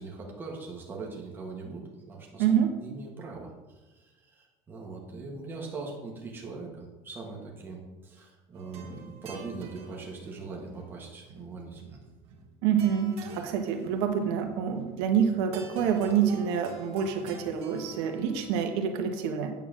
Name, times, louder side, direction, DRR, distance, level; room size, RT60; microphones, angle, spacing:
voice 1, 0.0-2.4 2.8-3.5 3.9-12.0, right 3 dB, 15° right, -2 dB, 1.6 m, -41 dB
voice 2, 2.4-2.7 12.6-19.5, right 8 dB, 75° right, 4 dB, 1.5 m, -27 dB
sound 1, 8.5-18.6, right 4 dB, 40° right, 1.7 m, -47 dB
9.0 x 4.5 x 7.5 m, 1.1 s
cardioid pair, 175°, 15 cm